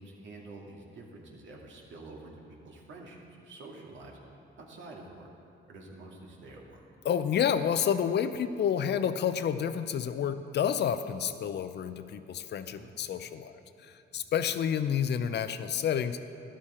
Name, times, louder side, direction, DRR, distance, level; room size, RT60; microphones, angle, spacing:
voice 1, 0.0-4.2 4.6-5.3 5.7-6.9 12.7-13.0 13.4-13.6 14.1-14.2, right 2 dB, 70° right, -1 dB, 2.1 m, -48 dB
voice 2, 7.0-16.2, left 8 dB, 60° left, 11 dB, 0.6 m, -29 dB
12.5 x 11.5 x 4.4 m, 2.6 s
cardioid pair, 90°, 20 cm